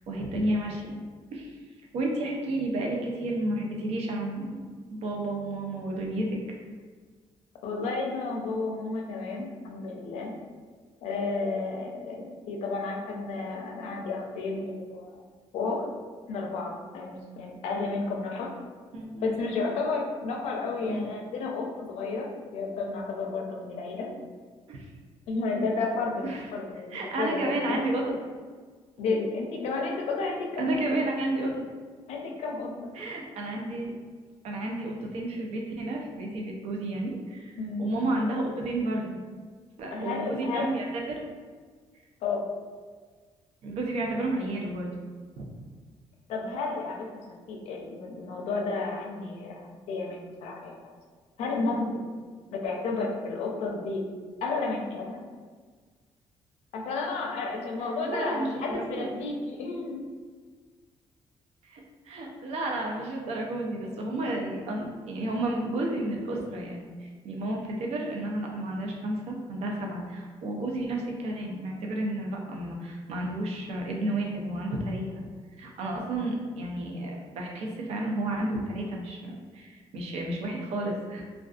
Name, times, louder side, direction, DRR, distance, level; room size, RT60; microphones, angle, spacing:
voice 1, 0.1-1.0 1.3-4.6 4.9-6.4 18.9-19.3 20.9-21.0 24.7-24.9 26.2-26.5 26.9-28.1 30.2-31.6 32.9-33.9 34.4-39.2 39.8-41.2 43.6-44.9 45.4-45.5 57.8-59.2 61.6-75.2 75.6-81.3, right 1 dB, 75° right, 0 dB, 0.5 m, -31 dB
voice 2, 7.6-10.3 11.0-15.2 15.5-15.9 16.3-18.5 19.2-24.1 25.3-27.8 29.0-31.0 32.1-32.9 37.6-37.8 39.9-40.7 42.2-42.5 46.3-50.9 51.4-52.0 52.5-54.0 54.4-55.2 56.7-60.0, left 3 dB, 90° left, 0 dB, 0.5 m, -32 dB
2.4 x 2.3 x 2.3 m, 1.5 s
cardioid pair, 160°, 11 cm